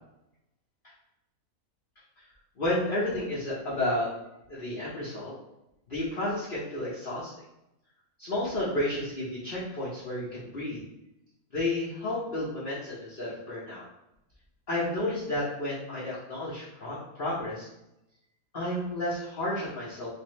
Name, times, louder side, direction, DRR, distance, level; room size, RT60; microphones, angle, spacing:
voice 1, 2.6-4.1 4.5-5.3 5.9-7.3 8.2-10.8 11.5-13.8 14.7-17.7 18.5-20.2, left 1 dB, 40° left, -9 dB, 1.1 m, -31 dB
3.6 x 3.2 x 3.1 m, 0.88 s
omnidirectional pair, 1.6 m